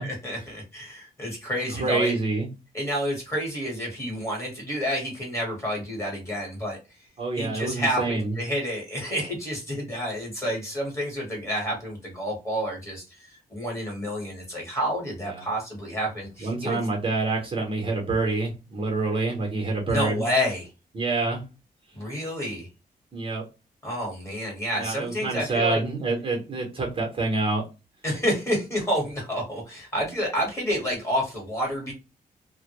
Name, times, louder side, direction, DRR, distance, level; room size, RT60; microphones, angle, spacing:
voice 1, 0.0-2.1 2.7-6.8 7.4-16.8 19.9-20.7 21.9-22.7 23.8-25.8 28.0-31.9, equal, 15° left, -1 dB, 1.2 m, -29 dB
voice 2, 1.8-2.5 7.2-8.4 15.3-15.5 16.4-20.3 20.9-21.4 23.1-23.4 24.7-27.6, right 3 dB, 35° right, 0 dB, 0.8 m, -27 dB
2.1 x 2.1 x 2.9 m, 0.28 s
wide cardioid pair, 145°, 15 cm